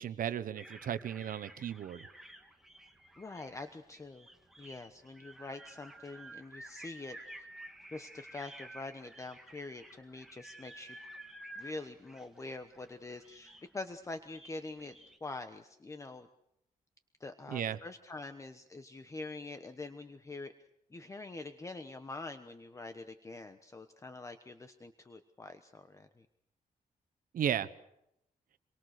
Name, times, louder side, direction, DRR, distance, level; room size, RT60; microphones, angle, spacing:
voice 1, 0.0-2.1 17.5-17.8 27.3-27.7, right 9 dB, 85° right, 13 dB, 1.1 m, -35 dB
sound 1, 0.6-15.2, right 1 dB, ahead, 2.1 m, -52 dB
voice 2, 3.2-4.3 4.6-7.5 7.9-11.0 11.6-15.0 15.2-16.3 17.2-20.5 20.9-26.3, left 3 dB, 20° left, 8 dB, 1.1 m, -45 dB
27.5 x 23.0 x 6.6 m, 0.80 s
wide cardioid pair, 155°, 14 cm